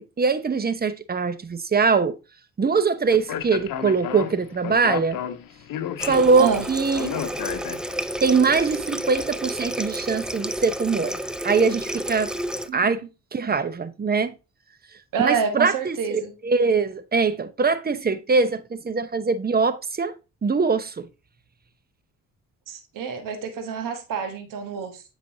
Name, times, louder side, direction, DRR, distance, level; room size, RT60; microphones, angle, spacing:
voice 1, 0.0-2.2 2.6-5.2 6.0-7.1 8.2-11.2 11.4-12.3 12.7-13.0 13.3-14.3 15.2-20.1 20.4-21.1, right 4 dB, 30° right, 0.8 m, -22 dB
Speech, 3.1-8.2, left 10 dB, 75° left, 0.8 m, -32 dB
Water tap faucet, 6.0-12.7, equal, ahead, 0.4 m, -31 dB
voice 2, 12.7-13.0 15.1-16.3 22.7-25.0, right 6 dB, 70° right, 1.3 m, -27 dB
7.7 x 5.2 x 2.7 m
cardioid pair, 70°, 34 cm